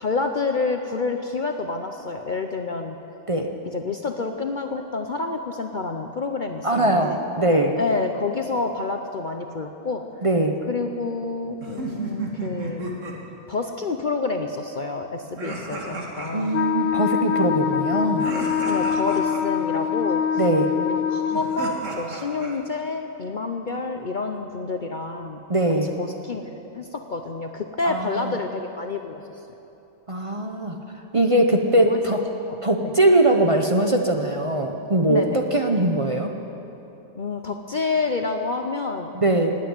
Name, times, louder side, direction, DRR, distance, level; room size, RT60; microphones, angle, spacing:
voice 1, 0.0-3.0 3.7-7.2 7.8-10.0 10.7-12.8 13.5-16.6 17.7-17.8 18.7-20.2 20.7-25.4 25.8-29.2 31.8-32.0 32.5-32.6 32.8-32.9 35.1-35.5 37.2-39.1, left 3 dB, 45° left, 5 dB, 0.7 m, -28 dB
voice 2, 6.6-7.8 10.2-10.6 16.3-18.3 20.4-20.7 25.5-25.9 27.8-28.3 30.1-30.8 31.1-32.2 32.6-36.3 39.1-39.5, right 1 dB, 30° right, 3 dB, 0.8 m, -21 dB
sound 1, 11.6-13.1 15.4-16.5 18.2-19.4 21.3-22.5, right 2 dB, 70° right, 2.2 m, -32 dB
Wind instrument woodwind instrument, 16.5-21.7, left 8 dB, 75° left, 1.0 m, -24 dB
18.5 x 8.6 x 8.8 m, 3.0 s
omnidirectional pair, 1.4 m